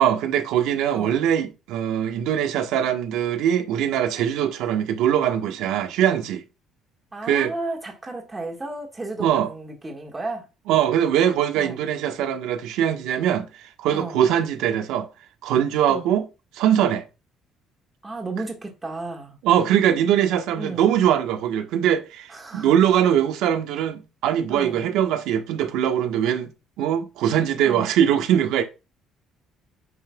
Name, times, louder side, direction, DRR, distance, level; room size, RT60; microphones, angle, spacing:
voice 1, 0.0-6.4 7.2-7.5 9.2-9.5 10.7-15.1 15.4-16.3 16.5-17.0 19.4-28.6, right 10 dB, 75° right, 1.3 m, -22 dB
voice 2, 7.1-10.5 11.5-11.8 13.9-14.2 15.9-16.1 18.0-19.4 20.5-20.9 22.3-22.8 24.5-24.8 27.6-27.9, right 2 dB, 10° right, 1.8 m, -33 dB
9.6 x 5.6 x 2.3 m
cardioid pair, 175°, 0 cm